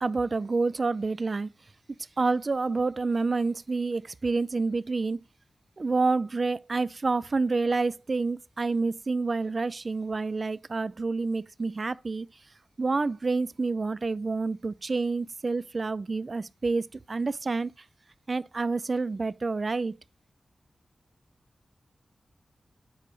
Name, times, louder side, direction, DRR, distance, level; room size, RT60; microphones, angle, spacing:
voice 1, 0.0-1.5 2.2-5.2 5.8-12.3 12.8-17.7 18.3-19.9, right 3 dB, 45° right, 0.4 m, -28 dB
8.2 x 4.7 x 3.8 m
wide cardioid pair, 80°, 0 cm